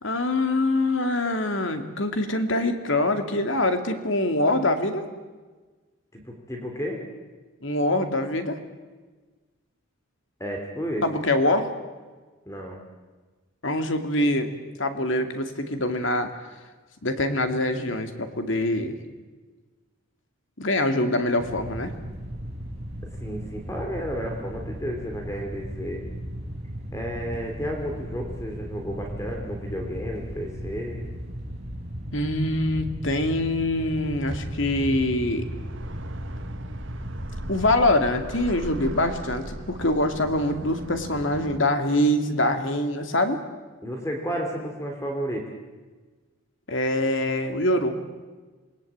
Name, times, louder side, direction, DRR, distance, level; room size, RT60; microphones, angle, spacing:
voice 1, 0.0-5.0 7.6-8.6 11.0-11.7 13.6-14.5 14.8-16.3 17.0-19.0 20.6-21.9 32.1-35.4 37.5-43.4 46.7-47.9, left 1 dB, 65° left, 7 dB, 2.5 m, -24 dB
voice 2, 6.1-7.0 10.4-11.1 12.5-12.8 23.1-26.0 26.9-31.1 43.8-45.5, equal, 15° left, 1 dB, 3.0 m, -32 dB
sound 1, 21.4-37.8, equal, 30° right, 4.9 m, -36 dB
sound 2, 34.3-41.6, right 1 dB, 65° right, 1.5 m, -38 dB
27.5 x 20.0 x 8.8 m, 1.3 s
head